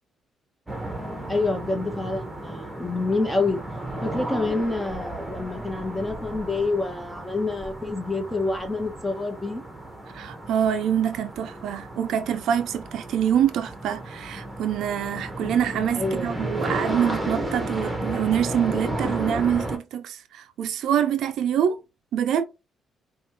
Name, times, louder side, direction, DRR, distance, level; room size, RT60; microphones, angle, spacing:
sound 1, 0.7-19.8, right 1 dB, 15° right, 1.4 m, -33 dB
voice 1, 1.3-3.6 4.0-9.6 16.0-16.4, left 3 dB, 10° left, 1.2 m, -27 dB
voice 2, 10.1-21.8 22.1-22.4, right 9 dB, 80° right, 0.5 m, -25 dB
5.2 x 2.5 x 3.1 m
cardioid pair, 90°, 0 cm